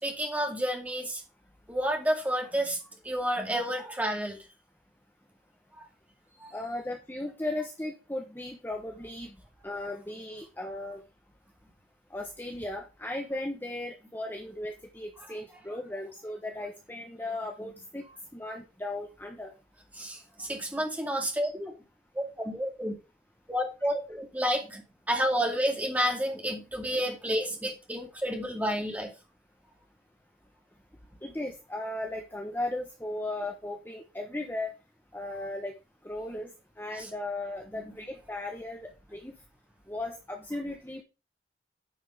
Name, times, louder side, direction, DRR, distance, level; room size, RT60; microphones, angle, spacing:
voice 1, 0.0-1.2 1.7-2.8 3.0-4.4 5.8-5.9 6.4-6.5 19.9-21.7 22.1-22.9 23.5-24.8 25.1-29.1 37.0-37.1, equal, 10° right, 1 dB, 2.2 m, -30 dB
voice 2, 6.5-9.4 9.6-11.0 12.1-18.1 18.3-19.5 31.2-34.7 35.1-35.8 36.0-39.3 39.9-41.0, left 1 dB, 10° left, 2 dB, 1.1 m, -36 dB
10.0 x 5.1 x 5.0 m, 0.29 s
head